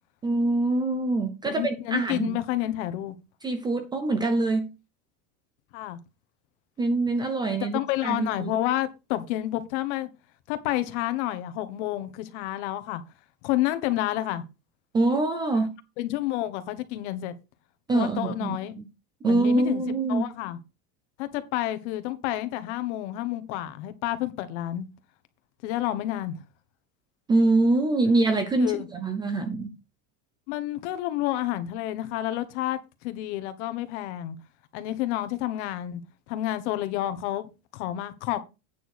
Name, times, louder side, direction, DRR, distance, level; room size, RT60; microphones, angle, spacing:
voice 1, 0.2-2.4 3.4-4.7 6.8-8.5 14.9-15.7 17.9-18.6 19.2-20.2 27.3-29.7, right 2 dB, 10° right, 0.5 m, -24 dB
voice 2, 1.4-3.1 5.7-6.0 7.5-10.1 10.5-13.0 13.4-14.4 16.0-17.4 17.9-18.7 19.2-20.6 21.2-24.9 25.6-26.4 28.6-28.9 30.5-34.3 34.7-36.0 36.3-38.4, left 14 dB, 55° left, 1.5 m, -29 dB
9.2 x 6.2 x 4.8 m
supercardioid pair, 175°, 41 cm